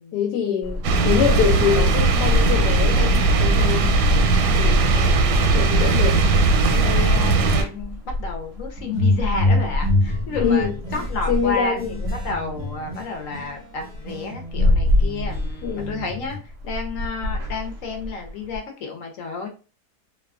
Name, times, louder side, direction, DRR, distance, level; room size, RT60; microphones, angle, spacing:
voice 1, 0.1-3.9 4.5-5.2 5.5-6.3 10.4-12.0 15.6-16.0, left 7 dB, 85° left, 1.2 m, -25 dB
sound 1, 0.6-18.6, left 1 dB, 70° right, 0.8 m, -29 dB
sound 2, 0.8-7.6, right 3 dB, 85° right, 1.2 m, -18 dB
voice 2, 4.9-5.9 6.7-10.7 10.9-16.4 16.7-19.5, left 4 dB, 65° left, 0.9 m, -31 dB
sound 3, 8.8-13.5 13.8-16.4, left 1 dB, 30° right, 0.6 m, -26 dB
2.7 x 2.3 x 2.3 m
omnidirectional pair, 1.7 m